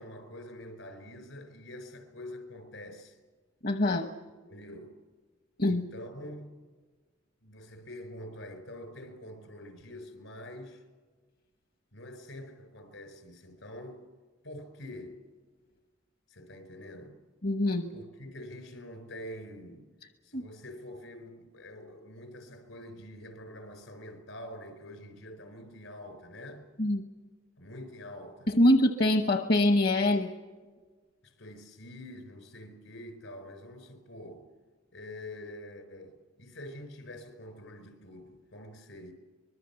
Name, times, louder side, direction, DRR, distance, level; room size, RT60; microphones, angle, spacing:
voice 1, 0.0-3.2 4.5-5.0 5.6-6.5 7.4-10.8 11.9-14.0 14.4-15.2 16.3-17.2 17.9-19.9 20.2-26.6 27.6-28.5 31.2-34.5 34.9-39.1, left 1 dB, 75° left, 4.7 m, -46 dB
voice 2, 3.6-4.1 5.6-5.8 17.4-17.9 20.3-20.4 26.8-27.0 28.5-30.3, left 1 dB, 50° left, 1.1 m, -24 dB
24.5 x 22.0 x 7.0 m
head